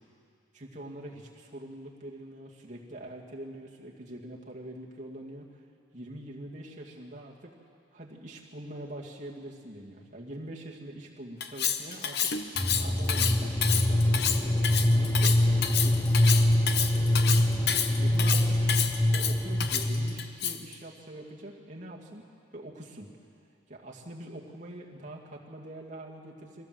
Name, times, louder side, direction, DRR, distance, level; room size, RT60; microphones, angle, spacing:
voice 1, 0.5-5.6 5.9-7.5 7.9-12.3 12.8-16.1 16.9-22.3 22.5-23.1 23.7-26.7, right 1 dB, 40° right, -2 dB, 2.2 m, -44 dB
Cutlery silverware, 11.4-20.7, left 8 dB, 55° left, 0.9 m, -29 dB
sound 1, 12.6-20.4, left 1 dB, 15° left, 0.4 m, -25 dB
22.5 x 15.5 x 7.7 m, 2.4 s
head